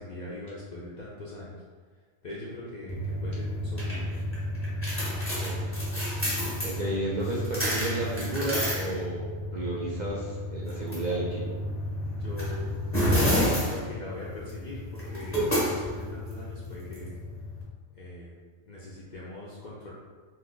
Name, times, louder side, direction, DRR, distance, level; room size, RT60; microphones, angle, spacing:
voice 1, 0.0-1.6 2.2-4.4 4.9-5.7 12.2-12.7 13.6-17.1 17.9-18.3 18.7-19.9, left 1 dB, 60° left, -6 dB, 0.5 m, -41 dB
sound 1, 2.9-17.6, equal, 15° left, 0.6 m, -30 dB
voice 2, 6.6-9.2 9.5-11.6, right 1 dB, 55° right, -5 dB, 0.5 m, -32 dB
2.6 x 2.3 x 3.6 m, 1.5 s
omnidirectional pair, 1.2 m